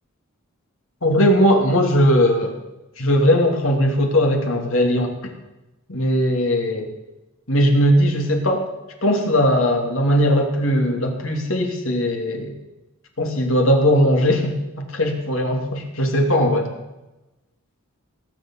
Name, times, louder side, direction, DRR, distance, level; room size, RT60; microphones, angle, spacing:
voice 1, 1.0-2.6 3.0-5.1 5.9-6.9 7.5-8.6 9.0-12.5 13.2-16.7, equal, 65° left, 2 dB, 2.9 m, -19 dB
18.0 x 7.5 x 7.7 m, 1.0 s
head